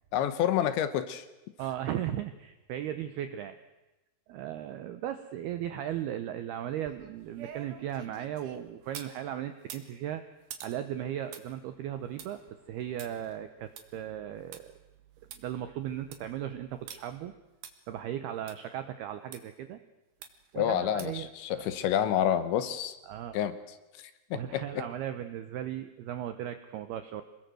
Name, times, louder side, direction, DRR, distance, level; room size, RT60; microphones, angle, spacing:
voice 1, 0.1-1.3 20.6-23.0 23.3-23.5 24.3-24.8, left 10 dB, 75° left, 12 dB, 3.1 m, -28 dB
voice 2, 1.6-3.6 4.3-10.2 10.6-12.4 12.7-14.7 15.3-17.3 17.9-19.8 20.5-21.3 21.6-21.7 23.1-23.4 24.0-27.2, right 11 dB, 80° right, 10 dB, 2.3 m, -37 dB
sound 1, 6.7-9.2 9.6-14.6 15.0-15.1 15.3-15.4 15.9-16.3 16.9-17.0 17.6-17.7 18.5-18.6 19.3-19.4 20.2-20.5 21.0-21.3 21.7-21.8, right 9 dB, 60° right, 3.0 m, -48 dB
26.5 x 20.5 x 7.8 m, 1.1 s
omnidirectional pair, 5.8 m